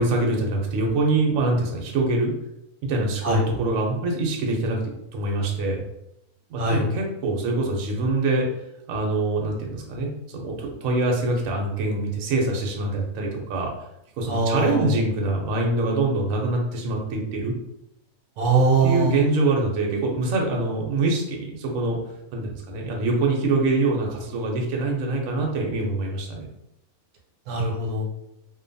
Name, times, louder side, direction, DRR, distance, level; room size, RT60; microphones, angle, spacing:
voice 1, 0.0-2.3 2.8-4.8 5.1-5.8 6.5-8.5 8.9-13.7 14.2-17.5 18.8-22.0 22.3-26.5, right 2 dB, 70° right, 0 dB, 0.9 m, -24 dB
voice 2, 14.3-14.9 18.4-19.2 27.5-28.1, right 3 dB, 85° right, -1 dB, 1.2 m, -22 dB
2.7 x 2.2 x 2.6 m, 0.82 s
omnidirectional pair, 1.6 m